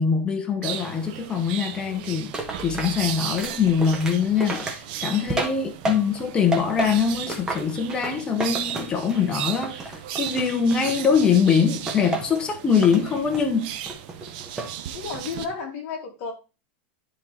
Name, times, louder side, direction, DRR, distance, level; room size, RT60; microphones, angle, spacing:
voice 1, 0.0-2.3 2.6-13.7, left 6 dB, 15° left, 1.0 m, -23 dB
sound 1, 0.6-15.5, right 10 dB, 45° right, 0.8 m, -36 dB
sound 2, 2.3-6.2 6.5-9.3 9.6-11.3 11.9-12.4 12.8-13.5 13.9-14.8 15.1-15.5, right 2 dB, 10° right, 1.0 m, -32 dB
sound 3, 2.3-3.9 4.2-4.3 4.5-5.5 5.8-6.2 6.5-7.9 9.2-9.5, right 8 dB, 70° right, 1.9 m, -44 dB
voice 2, 5.9-6.2 14.9-16.3, left 5 dB, 35° left, 2.9 m, -33 dB
10.5 x 3.9 x 4.2 m
supercardioid pair, 170°, 6 cm